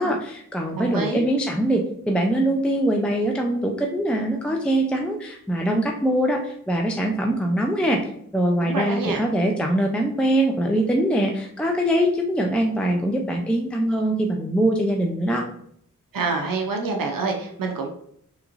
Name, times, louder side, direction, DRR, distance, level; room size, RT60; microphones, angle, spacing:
voice 1, 0.0-8.0 8.3-15.4, right 1 dB, 5° left, 1 dB, 0.4 m, -23 dB
voice 2, 0.7-1.2 8.6-9.2 16.1-17.9, right 4 dB, 80° right, 3 dB, 0.5 m, -26 dB
3.4 x 3.0 x 2.4 m, 0.68 s
wide cardioid pair, 55°, 33 cm